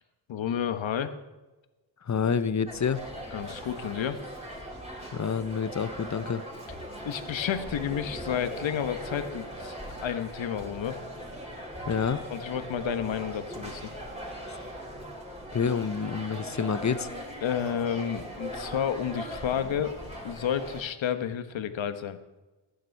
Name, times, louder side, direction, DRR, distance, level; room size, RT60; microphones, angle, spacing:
voice 1, 0.3-1.1 3.3-4.2 7.0-11.0 12.3-13.9 17.4-19.9 20.2-22.2, left 8 dB, 65° left, 10 dB, 1.4 m, -31 dB
voice 2, 2.0-3.0 5.1-6.4 11.9-12.2 14.5-14.6 15.5-17.1, left 6 dB, 35° left, 14 dB, 1.0 m, -28 dB
sound 1, 2.7-20.8, equal, 10° right, 6.1 m, -40 dB
15.5 x 12.0 x 4.7 m, 1.1 s
cardioid pair, 65°, 49 cm